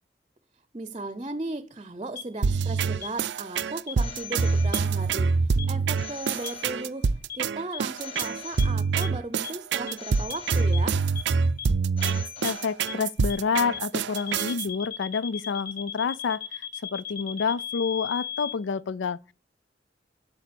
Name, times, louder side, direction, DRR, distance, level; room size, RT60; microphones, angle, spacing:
voice 1, 0.7-11.0, right 2 dB, 30° right, 0.6 m, -36 dB
sound 1, 2.2-2.3 3.0-3.1 3.9-4.0 4.7-4.8 5.6-5.7 6.4-6.5 7.3-7.4 7.7-7.8 8.2-8.3 8.6-8.7 9.0-9.1 9.4-9.5 9.9-10.0 10.3-10.4 10.7-10.8 11.2-11.3 11.6-11.7 12.0-12.1 12.4-12.5 12.9-13.0 13.3-13.4 13.7-13.8 14.2-18.5, left 9 dB, 50° left, 1.5 m, -35 dB
sound 2, 2.4-14.7, right 4 dB, 75° right, 0.4 m, -25 dB
Telephone, 4.0-5.2 6.0-7.2 8.0-9.2 10.0-11.2 12.0-13.2, left 6 dB, 30° left, 2.8 m, -43 dB
voice 2, 12.4-16.7 16.9-19.3, left 5 dB, 85° left, 0.4 m, -28 dB
8.7 x 7.1 x 6.8 m
head